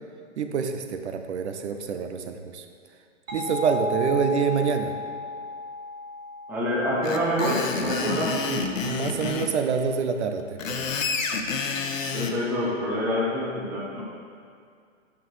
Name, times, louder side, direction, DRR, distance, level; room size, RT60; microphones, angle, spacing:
voice 1, 0.4-2.6 3.3-5.0 8.8-10.9, right 6 dB, 60° right, 7 dB, 0.8 m, -26 dB
sound 1, 3.3-8.7, left 3 dB, 85° right, 1.6 m, -35 dB
voice 2, 6.5-8.8 12.1-14.0, equal, 5° right, -5 dB, 0.5 m, -26 dB
Screech, 7.0-9.5 10.4-12.3, left 5 dB, 80° left, 0.9 m, -29 dB
10.5 x 5.8 x 3.2 m, 2.2 s
hypercardioid pair, 150°, 39 cm